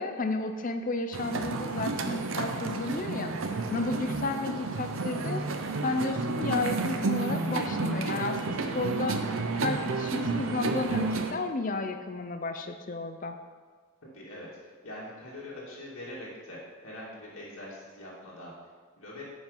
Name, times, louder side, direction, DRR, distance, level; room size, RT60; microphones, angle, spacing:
voice 1, 0.0-3.3 3.7-5.4 5.8-9.2 9.5-13.3, left 3 dB, 35° left, 7 dB, 0.5 m, -32 dB
sound 1, 1.1-11.3, right 3 dB, 60° right, 0.7 m, -31 dB
voice 2, 14.1-19.2, left 1 dB, 70° left, -6 dB, 2.0 m, -43 dB
9.7 x 5.2 x 5.5 m, 1.5 s
head